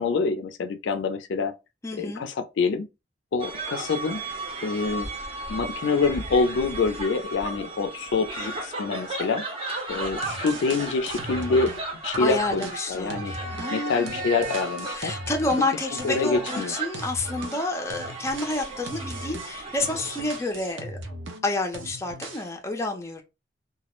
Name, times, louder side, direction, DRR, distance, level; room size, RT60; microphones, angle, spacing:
voice 1, 0.0-1.5 2.0-2.9 3.3-4.2 4.6-5.1 5.5-9.4 9.9-11.7 12.0-13.3 13.7-15.1 16.0-16.7, left 4 dB, 80° left, 0.4 m, -26 dB
voice 2, 1.8-2.3 12.2-14.2 14.9-21.0 21.4-23.2, left 2 dB, 15° left, 0.4 m, -29 dB
sound 1, 3.4-20.4, right 2 dB, 30° right, 0.6 m, -35 dB
sound 2, 10.2-11.8 12.1-15.7 16.0-21.5 21.7-22.5, right 2 dB, 85° right, 0.5 m, -39 dB
2.2 x 2.0 x 2.9 m
head